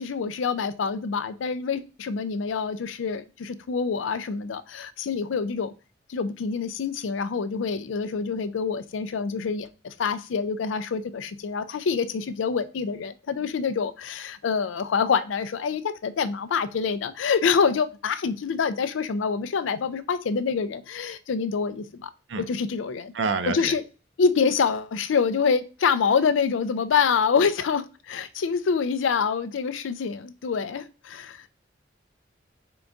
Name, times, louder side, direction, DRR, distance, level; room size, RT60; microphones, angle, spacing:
voice 1, 0.0-5.7 6.1-22.1 22.5-23.1 23.5-23.8 24.2-31.4, left 5 dB, 80° left, 0.4 m, -26 dB
voice 2, 23.1-23.7, right 4 dB, 65° right, 0.5 m, -27 dB
3.8 x 3.8 x 3.4 m
head